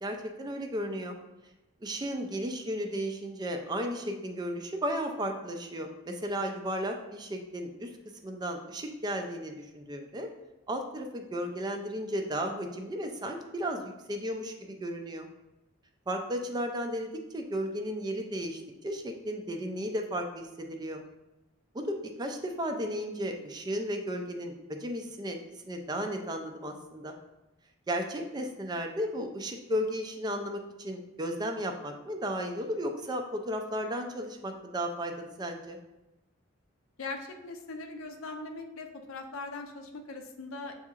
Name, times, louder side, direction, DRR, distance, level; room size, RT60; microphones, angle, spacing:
voice 1, 0.0-1.2 1.8-7.9 8.2-10.3 10.7-15.3 16.1-21.0 21.7-25.4 25.6-27.2 27.9-35.8, equal, 20° right, 4 dB, 0.3 m, -34 dB
voice 2, 37.0-40.7, left 3 dB, 75° left, 4 dB, 0.5 m, -40 dB
6.9 x 2.8 x 2.4 m, 0.99 s
head